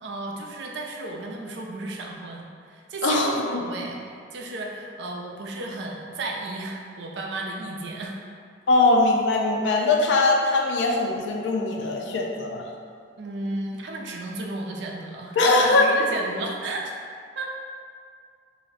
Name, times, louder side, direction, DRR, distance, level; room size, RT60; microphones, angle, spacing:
voice 1, 0.0-8.2 13.2-16.9 17.4-17.5, right 2 dB, 65° right, 0 dB, 0.4 m, -34 dB
voice 2, 3.0-3.6 8.7-12.6 15.4-15.9, left 2 dB, 70° left, 1 dB, 0.4 m, -21 dB
2.5 x 2.0 x 3.7 m, 2.2 s
head